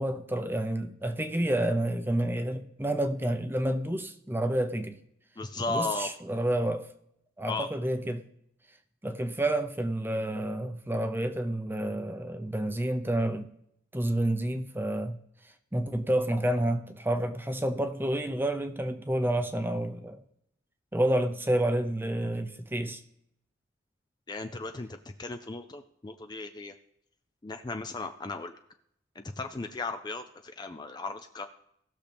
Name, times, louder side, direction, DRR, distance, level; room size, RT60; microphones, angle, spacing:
voice 1, 0.0-4.9 5.7-6.9 7.4-8.2 9.0-13.5 13.9-15.2 15.7-20.2 20.9-23.0, right 1 dB, 10° right, 0.7 m, -29 dB
voice 2, 5.4-6.1 7.5-7.7 24.3-26.7 27.4-28.6 29.2-31.5, left 3 dB, 20° left, 0.4 m, -36 dB
18.5 x 6.6 x 3.4 m
head